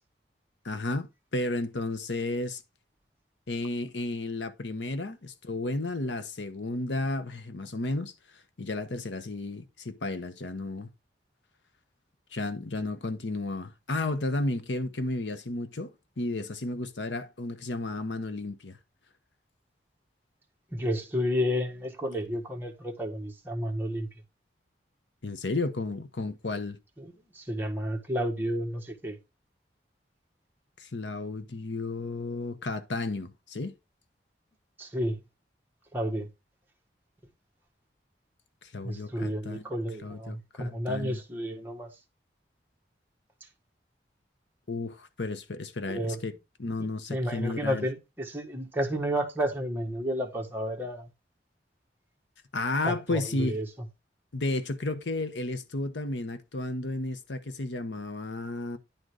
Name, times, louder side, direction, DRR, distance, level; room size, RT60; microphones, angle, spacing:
voice 1, 0.6-2.6 3.5-8.1 8.6-10.9 12.3-18.8 25.2-26.8 30.8-33.7 38.6-39.7 40.0-41.2 44.7-46.3 46.6-47.9 52.5-53.6 54.3-58.8, left 2 dB, 85° left, 1.0 m, -33 dB
voice 2, 20.7-24.1 27.0-27.1 27.3-29.2 34.8-35.2 35.9-36.3 38.8-41.9 45.9-46.2 47.1-51.1 52.8-53.6, equal, 10° right, 1.5 m, -31 dB
10.5 x 3.9 x 4.8 m
head